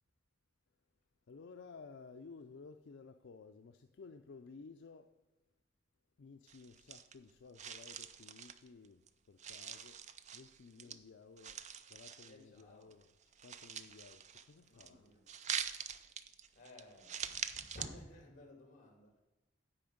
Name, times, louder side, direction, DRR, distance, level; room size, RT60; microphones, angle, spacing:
voice 1, 1.3-5.1 6.2-10.0 10.3-11.6 11.9-13.1 13.4-15.0, left 4 dB, 65° left, 0.4 m, -55 dB
sound 1, 6.5-7.3 7.5-9.1 9.4-11.0 11.4-12.6 12.9-14.9 15.3-17.9, right 8 dB, 35° right, 0.4 m, -44 dB
voice 2, 12.2-13.0 14.7-15.2 16.5-19.2, equal, 40° left, 2.2 m, -55 dB
8.8 x 5.1 x 7.8 m
head